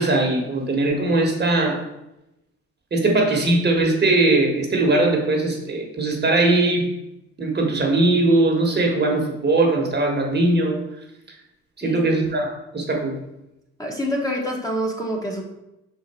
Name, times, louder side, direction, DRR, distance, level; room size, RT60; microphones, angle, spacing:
voice 1, 0.0-1.8 2.9-6.9 7.4-10.8 11.8-13.1, right 2 dB, 35° right, 1 dB, 1.4 m, -20 dB
voice 2, 13.8-15.4, equal, 10° left, -1 dB, 1.4 m, -26 dB
5.7 x 4.7 x 4.3 m, 0.90 s
cardioid pair, 90°, 30 cm